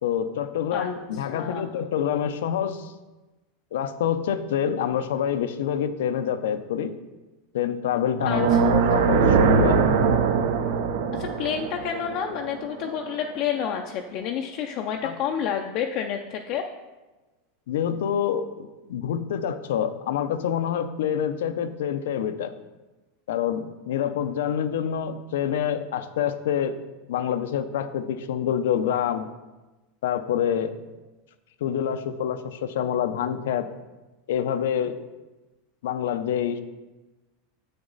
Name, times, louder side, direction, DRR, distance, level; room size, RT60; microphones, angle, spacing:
voice 1, 0.0-2.9 3.7-6.9 7.5-9.8 15.0-15.1 17.7-22.5 23.3-26.8 27.1-29.3 30.0-30.8 31.6-33.7 34.3-35.1 35.8-36.6, left 9 dB, 85° left, 11 dB, 0.6 m, -26 dB
voice 2, 1.3-1.6 8.2-8.7 11.1-16.6, left 8 dB, 40° left, 3 dB, 0.4 m, -29 dB
sound 1, 8.1-13.3, right 6 dB, 65° right, 0.7 m, -22 dB
8.1 x 6.7 x 4.0 m, 1.1 s
supercardioid pair, 165°, 0 cm